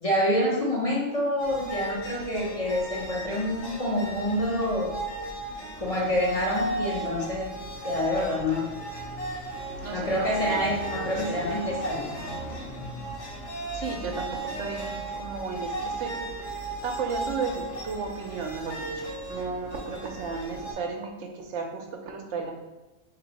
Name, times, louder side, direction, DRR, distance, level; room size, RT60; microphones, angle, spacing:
voice 1, 0.0-4.9 5.8-7.5 7.8-8.8 9.9-12.1, left 1 dB, 35° left, -4 dB, 0.7 m, -27 dB
sound 1, 1.4-20.7, right 2 dB, 80° left, 1.2 m, -35 dB
voice 2, 9.8-10.6 11.3-11.4 13.7-16.1 16.8-22.5, right 5 dB, 80° right, 3 dB, 0.9 m, -34 dB
3.4 x 3.0 x 4.0 m, 1.1 s
omnidirectional pair, 1.2 m